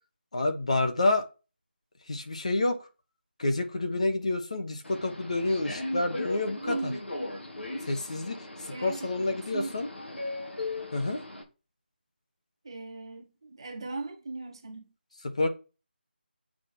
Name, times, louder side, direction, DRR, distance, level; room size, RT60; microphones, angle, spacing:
voice 1, 0.3-1.2 2.1-2.8 3.4-6.9 7.8-9.9 10.9-11.2 15.4-15.5, left 2 dB, 35° left, 1.2 m, -28 dB
Subway metro underground, 4.8-11.4, left 2 dB, 90° left, 3.4 m, -38 dB
voice 2, 6.6-7.0 8.7-9.8 12.6-14.9, right 3 dB, 25° right, 1.3 m, -38 dB
7.6 x 4.6 x 5.8 m
figure-of-eight pair, 180°, 6 cm